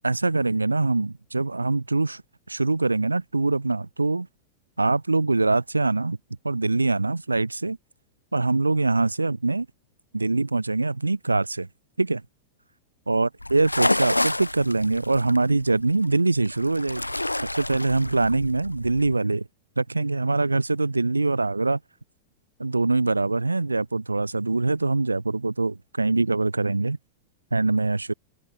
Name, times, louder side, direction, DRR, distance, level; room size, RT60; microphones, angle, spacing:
voice 1, 0.0-2.2 2.5-4.3 4.8-6.2 6.4-7.8 8.3-9.7 10.1-11.7 12.0-12.2 13.1-17.1 17.4-19.5 19.8-21.8 22.6-27.0 27.5-28.1, right 3 dB, 80° right, 6.9 m, -23 dB
sound 1, 13.4-19.1, left 1 dB, 85° left, 1.4 m, -29 dB
figure-of-eight pair, 90°, 0 cm